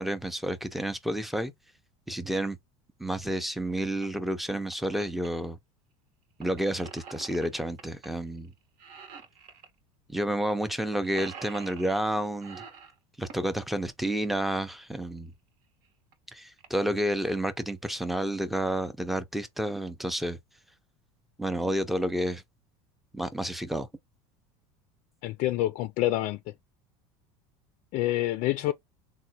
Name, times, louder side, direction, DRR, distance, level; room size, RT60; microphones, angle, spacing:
voice 1, 0.0-1.5 2.1-2.6 3.0-5.6 6.4-8.5 10.1-12.6 13.2-15.3 16.3-20.4 21.4-22.4 23.1-23.9, right 1 dB, ahead, 0.5 m, -30 dB
sound 1, 4.0-4.1 4.5-5.3 6.4-8.1 8.4-8.5 8.8-9.7 10.4-10.5 10.8-12.1 12.4-13.5 15.2-15.3 15.8-15.9 16.1-16.2 16.6-16.9 17.4-17.7, right 6 dB, 60° right, 1.0 m, -46 dB
voice 2, 25.2-26.4 27.9-28.7, left 15 dB, 55° left, 0.4 m, -27 dB
3.4 x 2.1 x 2.8 m
supercardioid pair, 105°, 15 cm